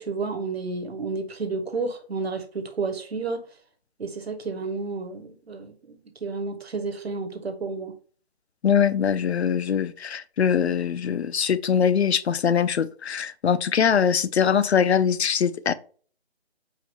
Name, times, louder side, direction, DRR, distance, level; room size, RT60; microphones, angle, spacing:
voice 1, 0.0-3.5 4.0-8.0, right 4 dB, 70° right, 1.0 m, -31 dB
voice 2, 8.6-15.7, left 7 dB, 90° left, 0.5 m, -22 dB
4.8 x 2.1 x 4.3 m
figure-of-eight pair, 170°, 32 cm